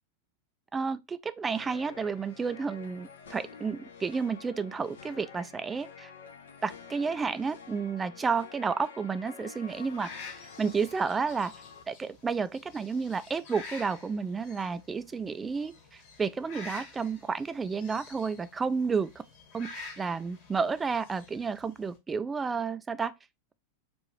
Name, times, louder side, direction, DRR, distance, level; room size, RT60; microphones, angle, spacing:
voice 1, 0.7-6.1 6.6-10.1 10.6-11.5 11.9-19.1 19.5-23.1, right 5 dB, 15° right, 0.3 m, -31 dB
sound 1, 1.5-11.8, left 6 dB, 65° left, 0.7 m, -49 dB
sound 2, 9.7-22.0, left 3 dB, 45° left, 2.2 m, -48 dB
4.5 x 2.6 x 3.1 m
figure-of-eight pair, 90°, 0 cm